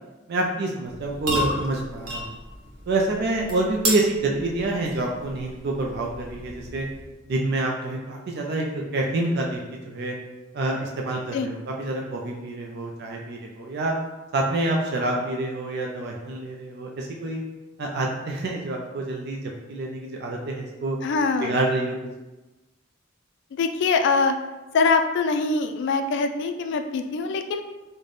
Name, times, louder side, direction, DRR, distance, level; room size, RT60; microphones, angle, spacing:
voice 1, 0.3-2.3 2.9-6.9 7.3-9.6 9.8-10.1 10.5-13.9 14.3-17.4 17.8-21.0 21.4-22.0, right 2 dB, 55° right, 0 dB, 0.4 m, -27 dB
sound 1, 0.9-7.3, equal, 80° right, 0.9 m, -33 dB
voice 2, 21.0-21.6 23.5-24.4 24.7-27.6, left 4 dB, 60° left, 7 dB, 0.3 m, -23 dB
3.9 x 2.1 x 3.2 m, 1.1 s
head